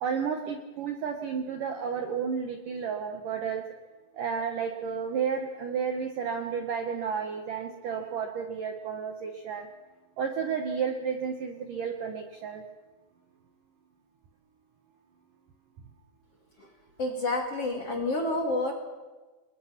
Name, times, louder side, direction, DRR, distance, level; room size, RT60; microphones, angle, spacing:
voice 1, 0.0-3.6 4.1-9.7 10.2-12.6, right 6 dB, 65° right, 5 dB, 2.1 m, -32 dB
voice 2, 17.0-18.7, left 2 dB, 40° left, 2 dB, 2.6 m, -29 dB
29.5 x 21.5 x 5.9 m, 1.2 s
omnidirectional pair, 5.5 m